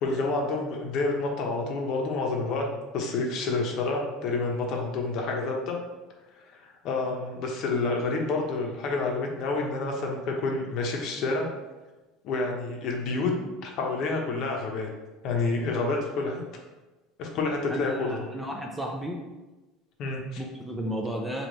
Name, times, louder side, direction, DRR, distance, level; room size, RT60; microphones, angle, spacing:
voice 1, 0.0-2.7 2.9-5.8 6.5-11.5 12.2-13.3 13.6-14.9 15.2-16.4 17.2-18.3 20.0-20.4, left 3 dB, 50° left, 1 dB, 0.7 m, -28 dB
voice 2, 17.7-19.2 20.4-21.5, equal, 5° right, 0 dB, 0.4 m, -33 dB
3.2 x 2.8 x 3.9 m, 1.1 s
cardioid pair, 150°, 0 cm